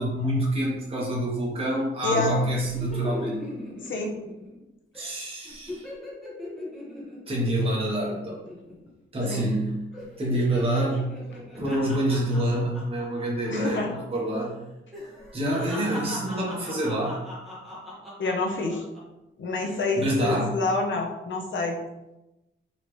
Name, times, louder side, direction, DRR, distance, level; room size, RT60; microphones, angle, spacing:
voice 1, 0.0-3.4 4.9-5.9 7.3-8.4 9.1-9.8 10.2-11.2 11.6-14.6 15.3-17.2 20.0-20.6, right 1 dB, 30° right, -5 dB, 1.0 m, -27 dB
voice 2, 2.0-2.3 3.8-4.1 9.3-9.4 13.5-13.9 18.2-18.8 19.4-21.8, left 3 dB, 70° left, 1 dB, 0.8 m, -27 dB
sound 1, 2.1-4.6 4.9-5.2 5.5-8.9 9.2-9.6 9.9-14.0 14.3-14.4 14.9-19.0 19.5-19.9, left 1 dB, ahead, 1.4 m, -39 dB
4.0 x 3.1 x 3.1 m, 0.96 s
wide cardioid pair, 135°, 21 cm